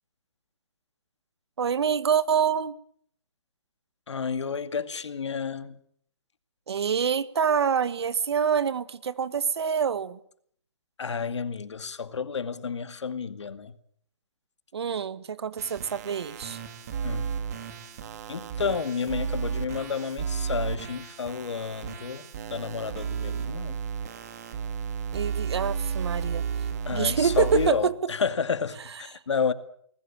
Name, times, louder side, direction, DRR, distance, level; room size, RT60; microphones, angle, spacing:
voice 1, 1.6-2.7 6.7-10.2 14.7-16.6 25.1-26.4 26.9-28.1, right 7 dB, 65° right, 1.6 m, -26 dB
voice 2, 4.1-5.8 11.0-13.7 17.0-17.3 18.3-23.8 26.9-29.5, left 6 dB, 85° left, 2.2 m, -30 dB
sound 1, 15.6-27.7, right 6 dB, 35° right, 2.7 m, -33 dB
20.5 x 20.0 x 8.9 m
hypercardioid pair, 170°, 15 cm